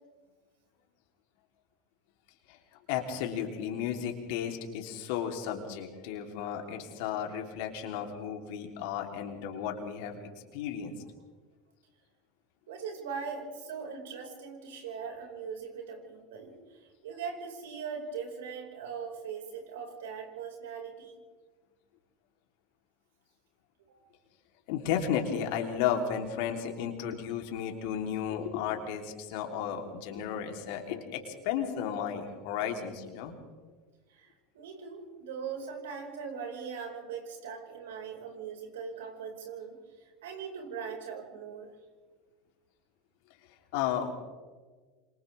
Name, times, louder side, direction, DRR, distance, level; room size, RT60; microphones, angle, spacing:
voice 1, 2.9-10.2 10.5-10.9 24.7-33.3 43.7-44.1, left 8 dB, 65° left, 3 dB, 3.4 m, -33 dB
voice 2, 12.7-21.1 23.9-24.0 34.1-41.7, right 6 dB, 75° right, 2 dB, 5.3 m, -40 dB
28.5 x 26.5 x 3.5 m, 1.4 s
hypercardioid pair, 80°, 0 cm